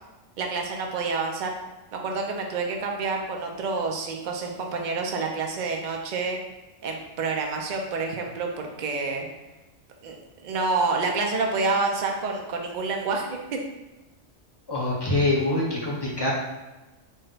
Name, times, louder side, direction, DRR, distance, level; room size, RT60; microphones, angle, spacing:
voice 1, 0.4-1.6 1.9-6.4 6.8-9.2 10.0-10.1 10.4-13.6, right 4 dB, 50° right, 1 dB, 0.6 m, -28 dB
voice 2, 14.7-16.3, left 2 dB, 25° left, -4 dB, 0.7 m, -24 dB
4.0 x 2.2 x 3.8 m, 1.1 s
omnidirectional pair, 1.3 m